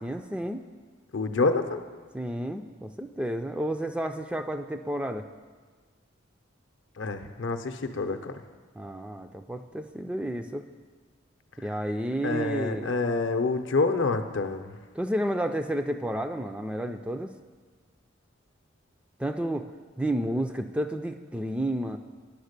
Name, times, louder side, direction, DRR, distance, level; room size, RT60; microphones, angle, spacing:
voice 1, 0.0-0.6 2.1-5.2 8.8-10.6 11.6-12.9 14.9-17.3 19.2-19.7 20.0-22.0, right 1 dB, 5° right, 6 dB, 0.3 m, -31 dB
voice 2, 1.1-1.8 7.0-8.4 12.2-14.7, left 3 dB, 65° left, 8 dB, 0.6 m, -27 dB
10.0 x 6.3 x 6.6 m, 1.5 s
head